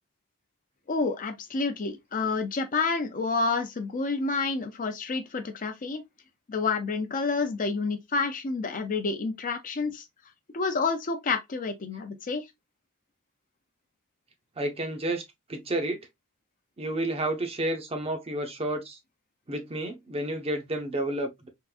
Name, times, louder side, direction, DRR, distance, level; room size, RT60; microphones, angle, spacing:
voice 1, 0.9-6.0 6.5-10.0 10.5-12.4, left 4 dB, 40° left, 0.5 m, -29 dB
voice 2, 14.6-15.2 15.5-16.0 16.8-19.0 19.5-21.5, right 1 dB, 25° right, 0.7 m, -30 dB
3.6 x 2.5 x 2.3 m
head